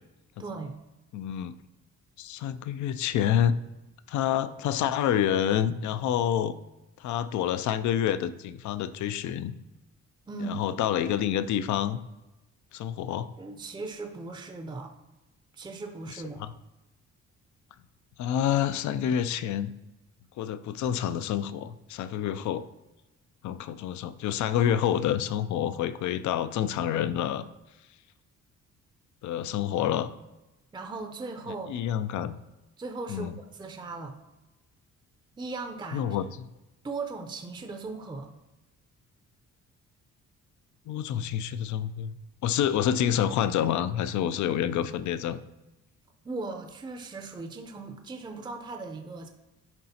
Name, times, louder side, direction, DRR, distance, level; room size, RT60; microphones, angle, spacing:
voice 1, 0.4-0.7 10.3-10.6 13.4-14.9 15.5-16.4 30.7-31.7 32.8-34.2 35.4-36.2 36.8-38.3 46.2-49.3, right 3 dB, 15° right, 5 dB, 0.5 m, -38 dB
voice 2, 1.1-1.5 2.2-3.5 4.1-6.5 7.0-9.5 10.5-12.0 12.7-13.3 16.1-16.5 18.2-19.7 20.4-22.6 23.4-27.5 29.2-30.1 31.5-32.4 33.1-33.3 35.9-36.5 40.9-42.2 42.4-45.4, left 10 dB, 70° left, 13 dB, 0.5 m, -28 dB
10.5 x 3.8 x 2.8 m, 1.0 s
cardioid pair, 90°, 30 cm